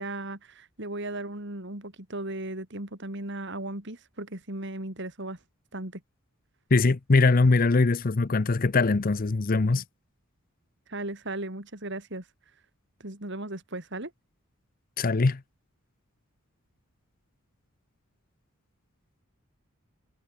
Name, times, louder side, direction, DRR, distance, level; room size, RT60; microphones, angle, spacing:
voice 1, 0.0-5.4 5.7-6.0 10.9-12.2 13.0-14.1, right 2 dB, 55° right, 3.9 m, -36 dB
voice 2, 6.7-9.8 15.0-15.4, left 3 dB, 40° left, 0.6 m, -22 dB
head